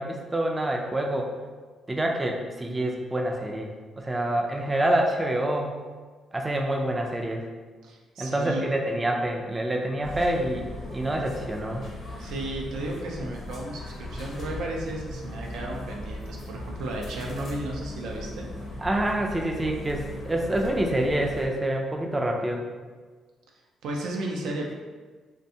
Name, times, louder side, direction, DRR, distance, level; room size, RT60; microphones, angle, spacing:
voice 1, 0.0-1.3 1.9-5.7 6.3-7.5 8.2-11.8 18.8-22.6, right 1 dB, 20° right, 1 dB, 0.3 m, -27 dB
voice 2, 7.8-8.7 12.2-18.5 23.8-24.7, right 2 dB, 85° right, -1 dB, 0.4 m, -34 dB
sound 1, 10.0-21.5, left 1 dB, 50° left, 0.6 m, -38 dB
2.5 x 2.2 x 2.7 m, 1.4 s
cardioid pair, 90°, 0 cm